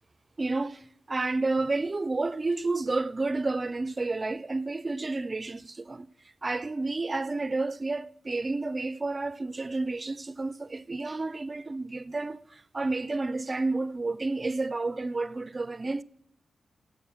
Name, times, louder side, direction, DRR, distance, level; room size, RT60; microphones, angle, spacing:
voice 1, 0.4-6.1 6.4-16.0, right 3 dB, 25° right, 0.4 m, -30 dB
12.5 x 7.9 x 6.0 m
wide cardioid pair, 120°, 0 cm